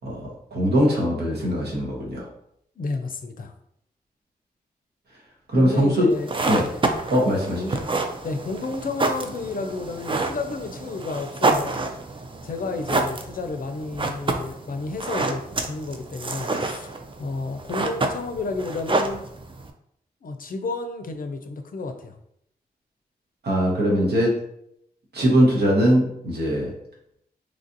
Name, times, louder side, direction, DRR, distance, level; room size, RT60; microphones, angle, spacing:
voice 1, 0.0-2.2 5.5-6.1 6.5-6.6 7.1-7.8 23.4-24.3 25.1-26.7, equal, 80° right, -3 dB, 1.1 m, -21 dB
voice 2, 2.8-3.5 5.6-6.7 7.6-7.8 8.2-11.8 12.4-16.9 17.2-19.2 20.2-22.2, left 3 dB, 55° left, 6 dB, 0.5 m, -31 dB
sound 1, 6.1-19.7, right 3 dB, 30° right, 0.4 m, -28 dB
3.1 x 2.5 x 2.6 m, 0.74 s
cardioid pair, 40°, 17 cm